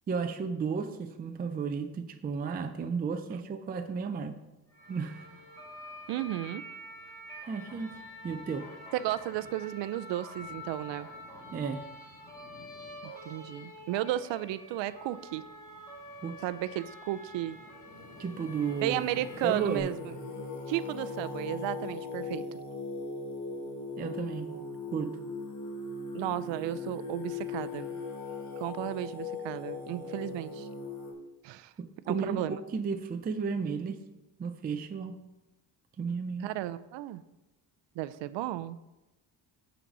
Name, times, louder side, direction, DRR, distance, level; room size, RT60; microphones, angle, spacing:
voice 1, 0.1-4.4 4.9-5.3 7.5-7.9 8.2-8.7 11.5-11.8 16.2-16.4 18.2-19.9 24.0-24.5 24.9-25.2 31.8-34.0 34.4-35.2 36.0-36.5, right 5 dB, 25° right, 7 dB, 0.4 m, -33 dB
sound 1, 4.7-19.8, left 1 dB, 10° left, 2.2 m, -47 dB
voice 2, 6.1-6.6 8.9-11.1 13.0-15.4 16.4-17.6 18.8-19.9 20.7-22.5 26.1-28.0 28.6-30.7 31.4-31.7 32.1-32.6 36.4-37.2 38.0-38.8, right 14 dB, 85° right, 15 dB, 0.5 m, -34 dB
Singing, 17.3-31.1, left 4 dB, 45° left, 1.8 m, -39 dB
9.2 x 4.1 x 5.9 m, 1.0 s
cardioid pair, 145°, 43 cm